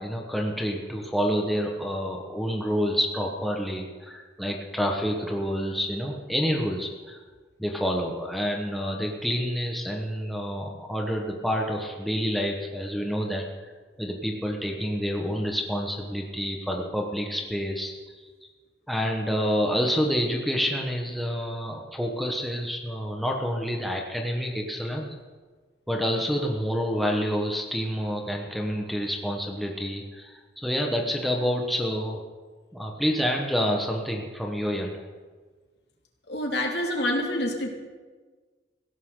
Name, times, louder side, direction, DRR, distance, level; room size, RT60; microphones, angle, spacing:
voice 1, 0.0-7.2 7.6-13.7 14.0-18.3 18.9-25.1 25.9-32.2 32.7-35.0, equal, ahead, 0 dB, 1.4 m, -28 dB
voice 2, 36.3-37.7, left 1 dB, 75° left, 0 dB, 2.7 m, -27 dB
18.5 x 16.5 x 4.0 m, 1.4 s
head